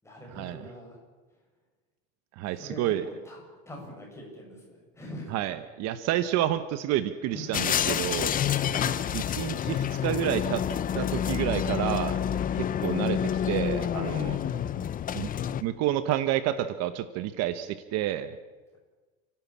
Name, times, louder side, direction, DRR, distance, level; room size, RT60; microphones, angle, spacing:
voice 1, 0.0-1.0 1.3-1.4 2.5-2.9 3.2-5.3 7.3-7.6 8.6-9.0 14.3-14.6, equal, 10° left, -1 dB, 6.9 m, -43 dB
voice 2, 2.3-3.0 5.3-8.4 9.1-10.6 10.9-12.2 12.5-14.4 15.1-15.3 15.6-18.4, right 12 dB, 60° right, 12 dB, 1.1 m, -29 dB
sound 1, 7.5-15.6, left 9 dB, 30° left, 0.7 m, -28 dB
29.5 x 12.0 x 8.6 m, 1.3 s
cardioid pair, 145°, 30 cm